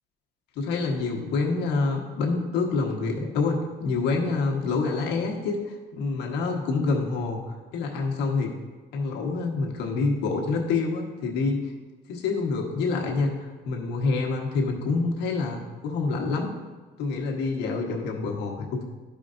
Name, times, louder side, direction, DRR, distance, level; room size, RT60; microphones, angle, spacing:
voice 1, 0.5-7.4 7.7-8.5 8.9-11.6 12.1-16.5 17.0-18.8, left 4 dB, 85° left, 0 dB, 1.4 m, -27 dB
12.5 x 5.0 x 2.6 m, 1.3 s
cardioid pair, 110°, 17 cm